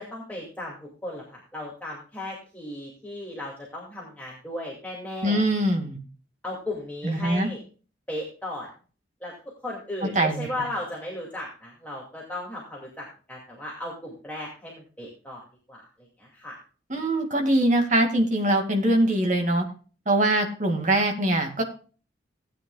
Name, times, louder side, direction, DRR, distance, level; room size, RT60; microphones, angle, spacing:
voice 1, 0.0-5.4 6.4-7.6 8.1-8.7 9.2-9.3 9.6-15.4 15.7-15.8 16.2-16.5, left 1 dB, 10° left, -4 dB, 2.4 m, -36 dB
voice 2, 5.2-6.0 7.0-7.5 10.2-10.7 16.9-19.6 20.1-21.6, right 1 dB, 45° right, 4 dB, 2.2 m, -23 dB
16.5 x 9.2 x 2.4 m, 0.37 s
head